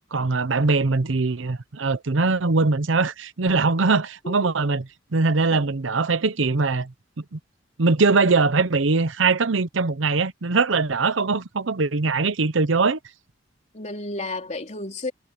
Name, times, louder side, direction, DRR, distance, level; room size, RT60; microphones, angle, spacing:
voice 1, 0.1-7.4 7.8-13.0, right 3 dB, 75° right, 0.8 m, -22 dB
voice 2, 13.7-15.1, left 2 dB, 40° left, 3.9 m, -32 dB
head